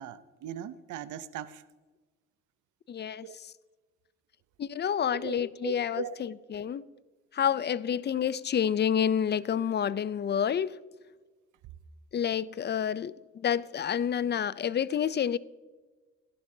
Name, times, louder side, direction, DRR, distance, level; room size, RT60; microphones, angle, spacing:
voice 1, 0.0-1.6 3.2-3.4 5.1-6.1, right 10 dB, 80° right, 0.7 m, -39 dB
voice 2, 2.9-3.3 4.6-6.8 7.3-10.8 12.1-13.1 13.4-15.4, left 8 dB, 35° left, 0.5 m, -28 dB
16.0 x 11.0 x 2.8 m
cardioid pair, 90°, 30 cm